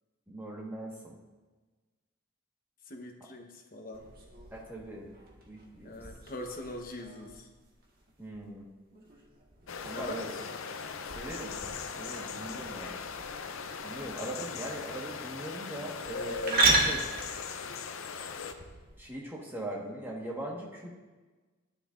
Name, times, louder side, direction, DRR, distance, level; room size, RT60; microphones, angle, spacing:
voice 1, 0.3-1.2 4.5-5.1 5.5-5.9 8.2-8.7 9.8-10.3 11.1-11.6 12.0-13.0 13.8-17.0 19.0-21.0, right 1 dB, 10° right, -3 dB, 1.4 m, -40 dB
voice 2, 2.8-4.1 5.8-7.5 9.9-10.3, left 1 dB, 40° left, 3 dB, 1.0 m, -42 dB
sound 1, 3.9-19.0, right 2 dB, 45° right, 1.5 m, -35 dB
sound 2, 9.7-18.5, left 5 dB, 65° left, 0.6 m, -39 dB
13.0 x 9.9 x 2.5 m, 1.3 s
head